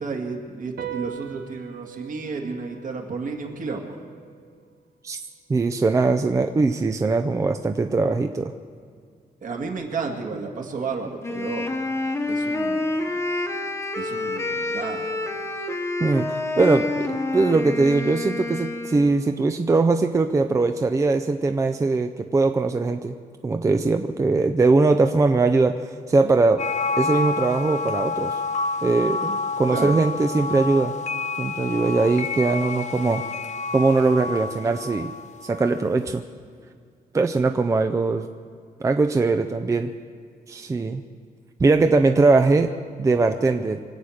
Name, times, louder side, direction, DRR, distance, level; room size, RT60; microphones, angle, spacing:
voice 1, 0.0-4.0 9.4-11.7 12.3-12.9 14.0-15.1 29.7-30.0, right 4 dB, 60° right, 2 dB, 2.1 m, -32 dB
sound 1, 0.8-7.5, right 10 dB, 90° right, 1.3 m, -42 dB
voice 2, 5.5-8.5 16.0-17.1 17.3-23.1 23.4-26.6 27.0-28.4 28.8-30.9 31.4-33.2 33.7-35.1 35.4-36.2 37.1-38.2 38.8-39.9 40.5-41.0 41.6-42.7 43.0-43.8, right 3 dB, 20° right, 7 dB, 0.5 m, -21 dB
Wind instrument woodwind instrument, 11.2-19.1, left 2 dB, 15° left, 1.1 m, -28 dB
sound 2, 26.6-35.9, left 4 dB, 50° left, 0.5 m, -29 dB
24.5 x 8.6 x 6.4 m, 2.1 s
wide cardioid pair, 180°, 16 cm